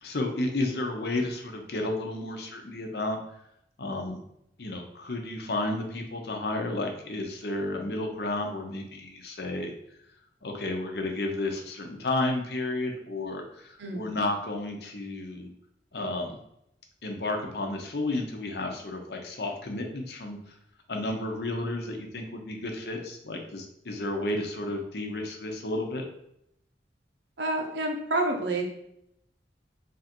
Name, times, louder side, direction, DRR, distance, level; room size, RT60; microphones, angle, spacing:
voice 1, 0.0-3.2 3.8-4.2 4.6-9.7 10.4-15.5 15.9-16.4 17.0-20.5 20.9-26.0, left 2 dB, 65° left, 3 dB, 0.7 m, -32 dB
voice 2, 13.8-14.1 27.4-28.6, right 2 dB, 75° right, 2 dB, 0.8 m, -28 dB
3.4 x 2.6 x 4.3 m, 0.76 s
head